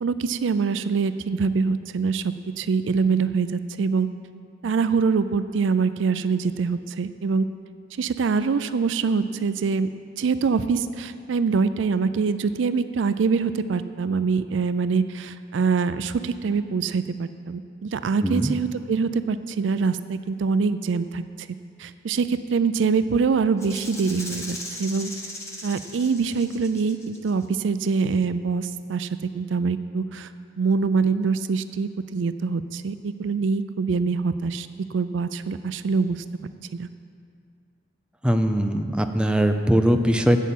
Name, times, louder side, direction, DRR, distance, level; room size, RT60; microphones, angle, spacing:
voice 1, 0.0-4.1 4.6-7.5 8.0-9.9 10.2-21.2 21.8-25.1 25.6-30.3 30.6-36.2 36.7-36.9, right 5 dB, 70° right, 12 dB, 0.4 m, -24 dB
voice 2, 18.2-18.5 38.2-40.4, equal, 5° right, 6 dB, 0.5 m, -21 dB
Rattle (instrument), 23.6-27.4, left 1 dB, 15° left, 1.1 m, -38 dB
8.3 x 7.3 x 8.4 m, 2.3 s
head